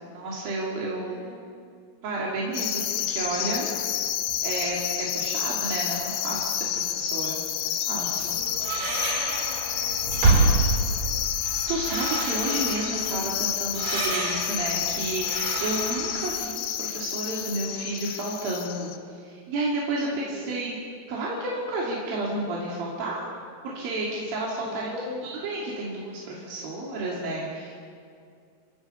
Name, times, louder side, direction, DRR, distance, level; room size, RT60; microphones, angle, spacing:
voice 1, 0.0-1.3 2.0-3.7 4.4-8.4 11.4-20.8 21.1-23.2 23.6-24.9 25.4-27.7, right 2 dB, 75° right, -4 dB, 4.4 m, -31 dB
voice 2, 1.1-1.6 5.0-5.5 8.3-11.2 20.0-20.5 24.6-25.3, left 2 dB, 20° right, -4 dB, 7.1 m, -43 dB
sound 1, 2.5-19.0, left 10 dB, 85° left, 2.8 m, -29 dB
sound 2, 8.0-16.3, right 3 dB, 60° right, 4.9 m, -28 dB
27.5 x 16.0 x 7.0 m, 2.3 s
omnidirectional pair, 4.1 m